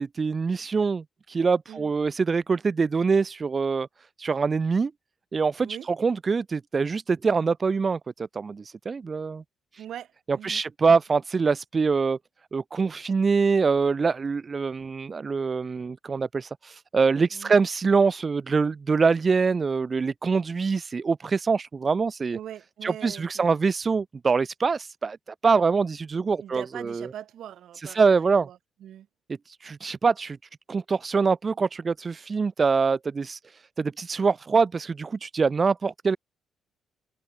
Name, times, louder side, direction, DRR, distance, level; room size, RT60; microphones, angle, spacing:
voice 1, 0.0-3.9 4.2-4.9 5.3-9.4 10.3-12.2 12.5-22.4 22.8-25.2 25.4-27.1 27.8-28.5 29.5-30.4 30.7-33.4 33.8-36.2, right 5 dB, 35° right, 0.8 m, -24 dB
voice 2, 9.8-10.6 10.9-11.0 17.3-17.5 22.3-23.5 26.4-29.1, right 11 dB, 70° right, 6.1 m, -42 dB
cardioid pair, 90°, 0 cm